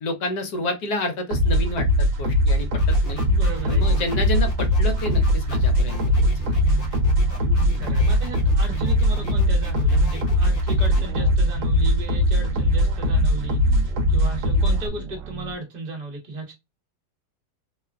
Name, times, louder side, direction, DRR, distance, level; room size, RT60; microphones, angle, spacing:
voice 1, 0.0-3.2 3.7-6.0, left 2 dB, 65° left, 1.1 m, -29 dB
sound 1, 1.3-14.9, equal, 55° right, 1.0 m, -20 dB
sound 2, 2.8-11.0, right 1 dB, 45° left, 0.7 m, -39 dB
voice 2, 3.2-4.0 7.5-13.8 14.1-16.5, right 2 dB, 35° right, 0.7 m, -36 dB
sound 3, 3.2-15.5, right 3 dB, 75° right, 1.3 m, -35 dB
3.0 x 2.2 x 2.3 m
omnidirectional pair, 2.0 m